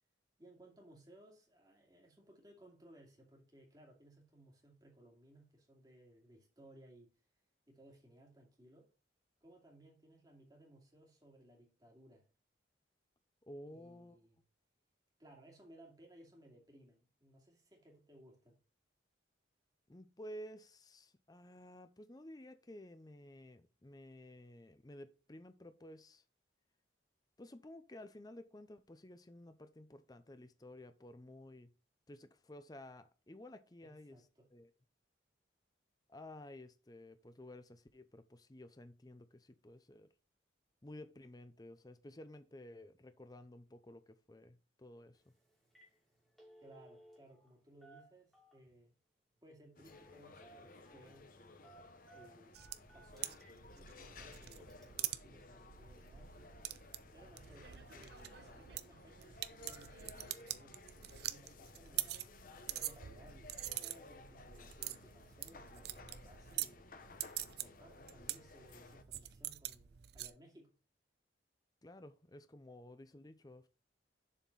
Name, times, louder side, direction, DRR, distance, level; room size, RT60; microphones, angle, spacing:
voice 1, 0.4-7.1 7.7-8.9 9.4-12.3 13.7-14.4 15.2-18.6 33.8-34.5 46.6-48.9 49.4-51.3 52.1-52.6 52.9-53.4 53.7-56.3 57.1-62.2 62.7-66.8 67.5-70.7, right 1 dB, 20° right, 2.4 m, -62 dB
voice 2, 13.5-14.2 19.9-26.2 27.4-31.7 32.1-34.2 34.5-34.7 36.1-40.1 40.8-45.2 71.8-73.7, left 1 dB, 20° left, 0.5 m, -53 dB
Telephone, 45.1-45.3 45.6-45.9 46.2-47.5 47.8-48.8 49.9-50.2 50.4-51.1 51.6-53.6 54.0-54.1 54.7-54.8, right 2 dB, ahead, 2.2 m, -61 dB
sound 1, 49.8-69.0, left 3 dB, 45° left, 0.8 m, -57 dB
sound 2, 52.5-70.3, right 13 dB, 55° right, 0.5 m, -45 dB
7.3 x 4.3 x 5.4 m
head